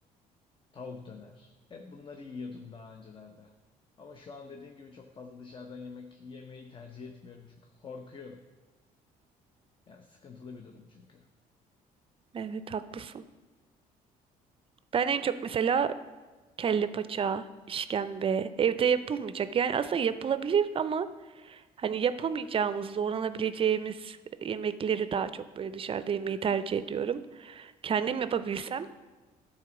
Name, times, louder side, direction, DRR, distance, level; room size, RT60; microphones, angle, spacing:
voice 1, 0.7-3.5 4.0-8.5 9.9-11.2, left 4 dB, 30° left, 4 dB, 0.7 m, -46 dB
voice 2, 12.3-13.2 14.9-16.0 16.6-21.1 21.4-28.9, right 7 dB, 35° right, 13 dB, 0.5 m, -29 dB
11.5 x 4.2 x 6.0 m, 1.3 s
cardioid pair, 100°, 15 cm